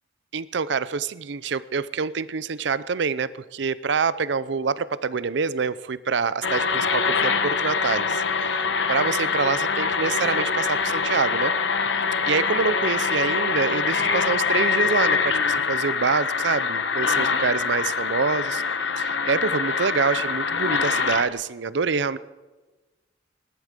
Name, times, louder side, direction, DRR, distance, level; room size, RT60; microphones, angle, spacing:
voice 1, 0.3-11.6 12.3-22.2, right 5 dB, 65° right, 17 dB, 0.6 m, -26 dB
sound 1, 6.4-21.3, left 5 dB, 70° left, 1.1 m, -24 dB
18.5 x 11.5 x 6.6 m, 1.2 s
head